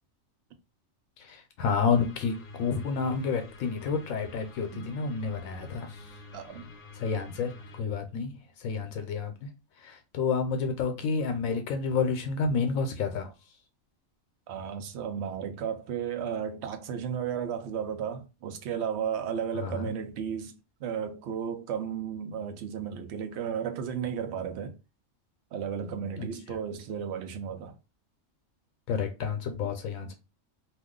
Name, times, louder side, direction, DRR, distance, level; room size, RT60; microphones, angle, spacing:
voice 1, 1.2-5.9 7.0-7.5 7.8-8.3 8.6-9.3 9.8-13.3 19.6-19.9 26.2-26.3 28.9-30.1, left 5 dB, 85° left, 1.0 m, -29 dB
sound 1, 1.9-7.8, left 3 dB, 55° left, 0.7 m, -48 dB
voice 2, 6.3-6.7 14.5-20.5 20.8-24.8 25.5-27.8 29.6-29.7, right 8 dB, 65° right, 0.8 m, -34 dB
2.6 x 2.3 x 3.6 m
omnidirectional pair, 1.4 m